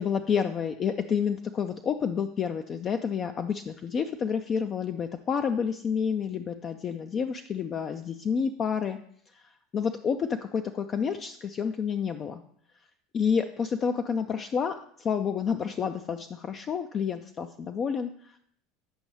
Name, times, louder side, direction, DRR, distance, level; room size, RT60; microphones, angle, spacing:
voice 1, 0.0-9.0 9.3-12.4 13.1-18.4, left 6 dB, 35° left, 7 dB, 0.4 m, -29 dB
7.8 x 5.2 x 3.2 m, 0.65 s
hypercardioid pair, 90°, 0 cm